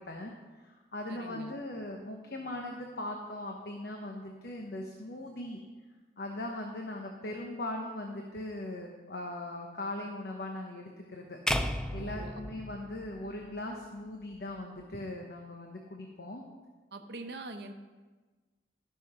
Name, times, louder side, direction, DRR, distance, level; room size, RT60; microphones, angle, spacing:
voice 1, 0.0-5.6 6.2-11.4 11.9-16.4, left 1 dB, 60° left, 1 dB, 1.0 m, -40 dB
voice 2, 1.1-1.5 11.9-12.4 16.9-17.7, right 2 dB, 60° right, 5 dB, 0.9 m, -43 dB
sound 1, 11.5-13.7, left 1 dB, 5° left, 0.4 m, -34 dB
13.5 x 5.8 x 5.9 m, 1.3 s
head